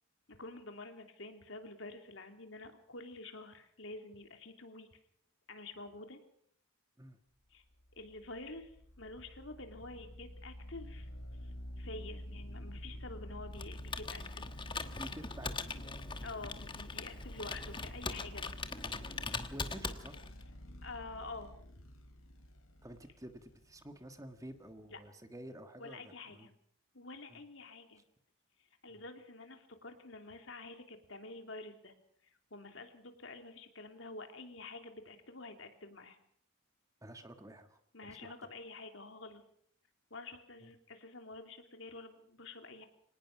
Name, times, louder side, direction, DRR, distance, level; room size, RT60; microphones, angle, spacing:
voice 1, 0.3-5.0 5.5-6.2 7.5-7.6 8.0-8.7 9.0-11.1 11.4-14.5 16.2-18.5 20.8-21.5 24.9-25.0 25.8-26.5 26.9-28.0 28.8-31.9 32.5-36.2 37.9-39.4 40.1-42.9, left 2 dB, 65° left, 6 dB, 3.0 m, -48 dB
sound 1, 7.7-25.1, equal, 80° left, 3.6 m, -49 dB
Computer keyboard, 13.5-20.4, left 4 dB, 20° left, 1.2 m, -41 dB
voice 2, 15.0-15.8 19.5-20.2 22.8-26.5 27.3-27.4 28.9-29.0 37.0-37.8 38.2-38.3 40.6-40.7, right 1 dB, 15° right, 7 dB, 1.5 m, -50 dB
25.5 x 19.0 x 6.0 m, 0.66 s
head